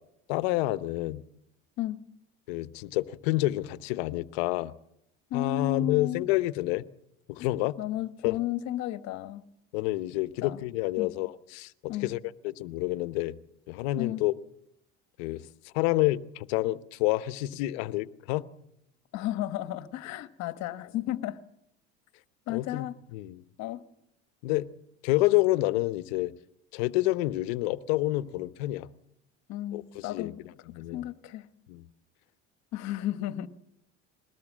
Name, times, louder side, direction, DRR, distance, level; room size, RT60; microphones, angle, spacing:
voice 1, 0.3-1.2 2.5-4.7 5.3-6.8 7.3-7.8 8.2-8.4 9.7-12.2 12.4-13.4 13.7-14.3 15.2-15.4 15.7-18.5 22.5-22.9 23.1-23.4 24.4-24.7 25.0-26.3 26.7-28.9 29.7-30.3 30.7-31.0 31.7-31.8, left 17 dB, 90° left, 0.9 m, -28 dB
voice 2, 5.3-6.3 7.4-7.5 7.8-9.4 10.4-10.6 11.0-11.1 11.9-12.1 14.0-14.2 19.1-21.4 22.5-23.0 23.6-23.8 29.5-30.4 30.7-31.5 32.7-33.5, left 13 dB, 60° left, 1.3 m, -33 dB
22.0 x 18.5 x 7.4 m
cardioid pair, 115°, 30 cm